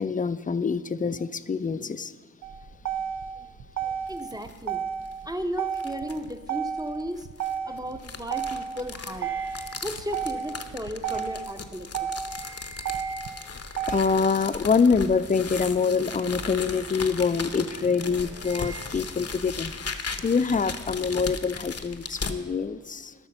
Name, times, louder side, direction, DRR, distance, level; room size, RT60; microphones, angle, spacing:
voice 1, 0.0-2.1 13.9-23.1, left 5 dB, 25° left, 14 dB, 0.4 m, -25 dB
Motor vehicle (road), 2.4-14.4, right 7 dB, 80° right, 0.7 m, -33 dB
sound 1, 4.1-4.6 5.1-5.2 5.7-6.3 7.2-22.4, left 4 dB, 55° left, 0.8 m, -37 dB
voice 2, 4.1-4.8 5.3-7.3 7.6-9.3 9.8-12.1, equal, 10° right, 6 dB, 0.7 m, -35 dB
sound 2, 9.2-14.5 14.8-19.3, right 4 dB, 45° right, 0.8 m, -46 dB
12.5 x 6.0 x 6.7 m, 1.4 s
wide cardioid pair, 65°, 30 cm